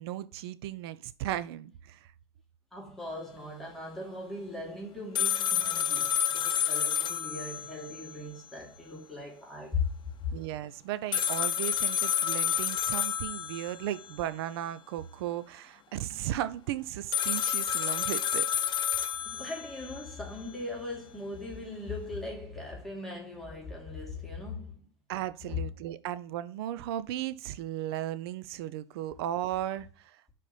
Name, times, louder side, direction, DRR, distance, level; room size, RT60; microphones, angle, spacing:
voice 1, 0.0-2.1 10.3-18.5 25.1-30.2, right 12 dB, 65° right, 0.6 m, -36 dB
voice 2, 2.7-9.9 19.2-24.8 25.5-25.6, left 3 dB, ahead, 2.7 m, -39 dB
sound 1, 5.2-8.2 8.5-8.6 11.1-14.1 17.1-20.1, left 9 dB, 35° left, 0.8 m, -30 dB
5.0 x 4.3 x 5.3 m
hypercardioid pair, 90°, 14 cm